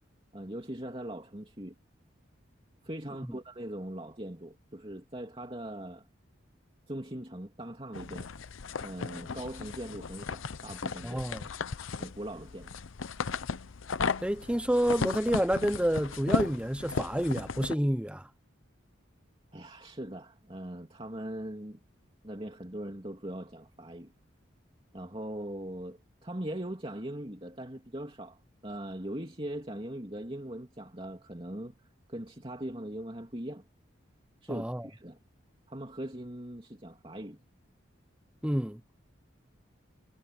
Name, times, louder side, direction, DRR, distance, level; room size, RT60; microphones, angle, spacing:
voice 1, 0.3-1.7 2.8-6.1 6.9-8.3 8.8-11.2 12.0-12.8 19.5-21.8 22.2-24.1 24.9-28.4 28.6-31.7 32.1-33.6 34.4-35.2 35.7-37.4, right 1 dB, 25° right, 2.9 m, -40 dB
sound 1, 7.9-17.7, left 4 dB, 80° left, 0.7 m, -36 dB
voice 2, 11.0-11.4 14.2-18.3 34.5-34.8 38.4-38.8, equal, 5° right, 0.8 m, -29 dB
head